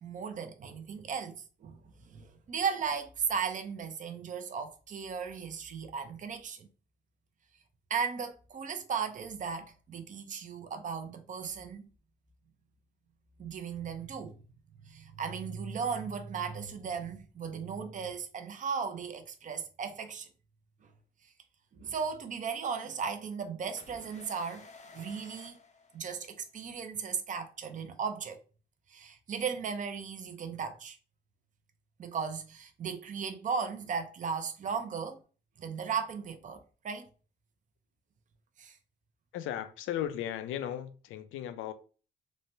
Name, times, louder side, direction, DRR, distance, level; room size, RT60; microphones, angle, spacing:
voice 1, 0.0-6.7 7.9-11.9 13.4-14.4 14.8-20.3 21.7-24.7 24.9-25.6 25.9-28.4 28.9-31.0 32.0-35.2 35.6-37.1 38.6-38.8, right 6 dB, 40° right, 0.5 m, -36 dB
sound 1, 23.8-26.6, left 4 dB, 35° left, 0.5 m, -53 dB
voice 2, 39.3-41.7, left 11 dB, 85° left, 0.4 m, -36 dB
3.1 x 2.1 x 2.6 m
cardioid pair, 90°, 20 cm